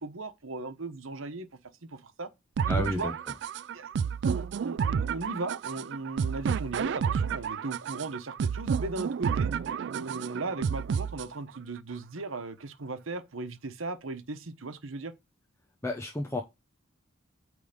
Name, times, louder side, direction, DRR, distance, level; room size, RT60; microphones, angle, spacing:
voice 1, 0.0-1.5 1.8-2.3 2.7-3.1 3.7-9.5 9.9-15.1, right 3 dB, 85° right, 1.1 m, -37 dB
sound 1, 2.6-11.6, right 6 dB, 60° right, 0.3 m, -30 dB
voice 2, 2.7-3.3 15.8-16.4, left 1 dB, 15° left, 0.8 m, -32 dB
8.8 x 3.5 x 5.1 m
head